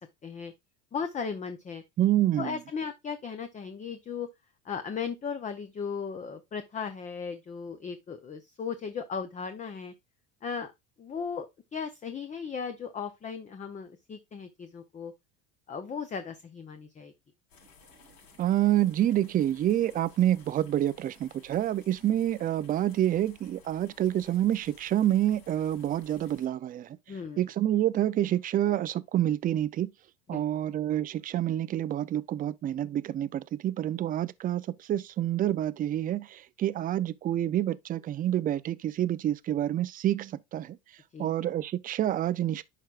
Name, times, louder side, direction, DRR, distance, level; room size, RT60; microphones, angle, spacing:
voice 1, 0.2-0.5 0.9-1.8 2.4-4.3 4.6-9.9 10.4-10.7 11.0-11.5 11.7-15.1 15.7-17.1 27.1-27.4 30.3-30.4 41.1-41.3, left 6 dB, 20° left, 0.6 m, -36 dB
voice 2, 2.0-2.6 18.4-27.0 27.4-29.9 30.3-40.8 41.2-42.6, right 12 dB, 25° right, 0.4 m, -28 dB
sound 1, 17.5-26.5, left 5 dB, 80° left, 4.6 m, -57 dB
10.5 x 4.6 x 2.4 m
supercardioid pair, 120°, 38 cm